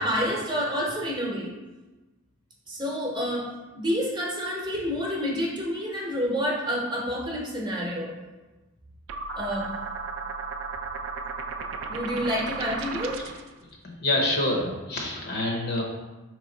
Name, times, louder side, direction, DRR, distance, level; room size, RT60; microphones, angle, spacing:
voice 1, 0.0-1.5 2.7-3.5 3.7-8.1 9.4-9.7 11.9-13.2, equal, 20° right, -3 dB, 0.9 m, -28 dB
sound 1, 9.1-13.5, right 4 dB, 60° right, 0.3 m, -34 dB
voice 2, 13.8-15.8, left 1 dB, 50° left, -1 dB, 0.8 m, -27 dB
4.4 x 3.1 x 3.9 m, 1.1 s
head